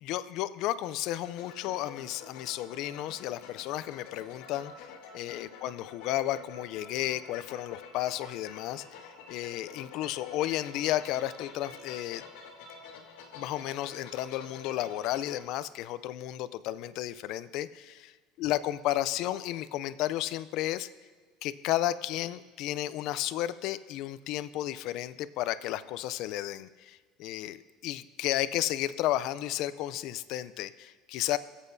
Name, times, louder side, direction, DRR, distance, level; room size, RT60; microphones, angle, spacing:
voice 1, 0.0-12.2 13.3-18.1 18.4-20.9 21.4-31.4, left 14 dB, 60° left, 15 dB, 0.4 m, -33 dB
sound 1, 1.2-15.4, left 5 dB, 90° left, 1.6 m, -48 dB
24.0 x 8.1 x 2.7 m, 1.4 s
cardioid pair, 130°, 0 cm